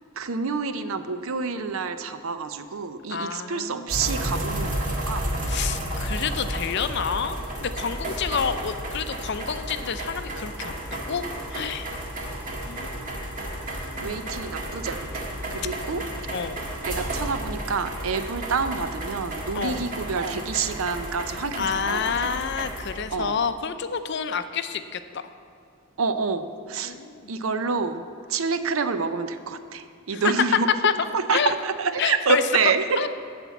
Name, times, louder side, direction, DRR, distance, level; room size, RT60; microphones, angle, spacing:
voice 1, 0.2-5.3 14.0-16.1 16.9-22.3 23.1-23.4 26.0-26.9 27.3-28.0 28.3-30.7 31.1-33.1, right 5 dB, 70° right, 10 dB, 0.6 m, -27 dB
voice 2, 3.1-4.3 5.4-11.2 11.5-11.9 12.7-13.4 14.0-14.3 16.3-16.6 19.5-19.8 21.6-25.3 26.8-27.3 30.1-30.2 30.8-31.5 32.0-32.4 33.0-33.1, left 6 dB, 55° left, 11 dB, 0.5 m, -29 dB
sound 1, 3.9-23.0, right 1 dB, 40° right, 1.6 m, -32 dB
13.0 x 4.4 x 8.2 m, 2.4 s
head